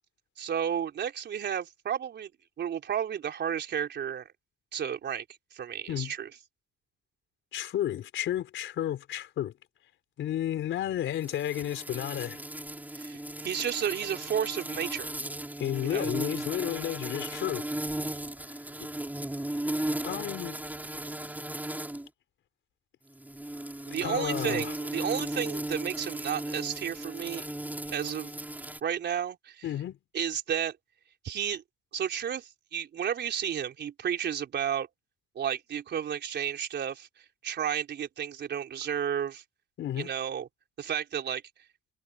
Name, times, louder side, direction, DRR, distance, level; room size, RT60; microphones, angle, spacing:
voice 1, 0.4-2.3 2.6-4.3 4.7-5.2 5.5-6.3 12.9-15.1 15.8-16.0 23.9-27.5 27.9-28.3 28.8-29.7 30.1-30.8 31.2-31.6 31.9-34.9 35.4-37.1 37.4-39.4 40.0-40.5 40.8-41.4, right 8 dB, 60° right, 4.0 m, -32 dB
voice 2, 7.5-9.5 10.2-12.4 15.6-17.7 18.5-18.6 20.0-20.6 24.0-24.7 29.6-30.0 39.8-40.1, left 11 dB, 75° left, 4.5 m, -32 dB
sound 1, 11.2-22.1 23.1-28.8, right 1 dB, 10° right, 6.7 m, -36 dB
cardioid pair, 90°, 20 cm